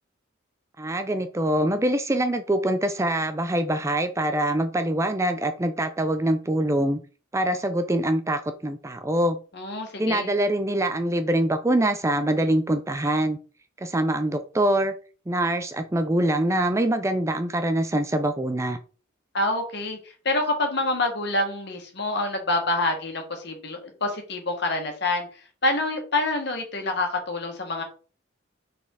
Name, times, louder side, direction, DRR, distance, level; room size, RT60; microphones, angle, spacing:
voice 1, 0.8-7.0 7.3-9.4 10.0-13.4 13.8-14.9 15.3-18.8, right 1 dB, 15° right, 9 dB, 0.5 m, -24 dB
voice 2, 9.5-10.3 19.3-20.0 20.3-25.3 25.6-27.8, left 2 dB, 60° left, 4 dB, 1.8 m, -26 dB
6.0 x 4.2 x 3.9 m, 0.36 s
head